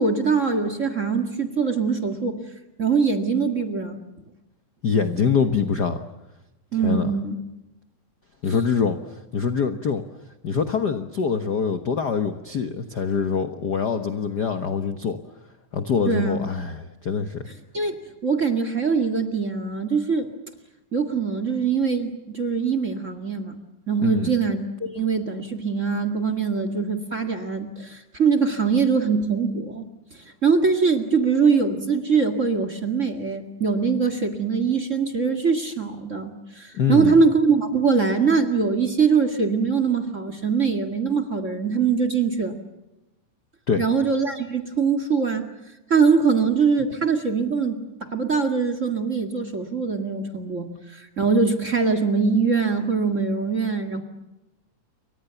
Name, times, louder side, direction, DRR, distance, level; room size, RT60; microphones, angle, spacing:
voice 1, 0.0-2.4 2.8-4.0 6.7-7.4 8.5-8.6 16.1-16.4 17.7-17.9 18.2-20.3 20.9-23.6 23.9-42.5 43.8-45.5 45.9-54.0, right 5 dB, 30° right, 10 dB, 1.9 m, -22 dB
voice 2, 4.8-6.0 6.8-7.1 8.4-10.0 10.4-15.2 15.7-17.5 24.0-24.3 36.7-37.2 43.7-43.8, left 6 dB, 50° left, 8 dB, 1.2 m, -24 dB
29.5 x 24.0 x 7.0 m, 0.96 s
omnidirectional pair, 3.5 m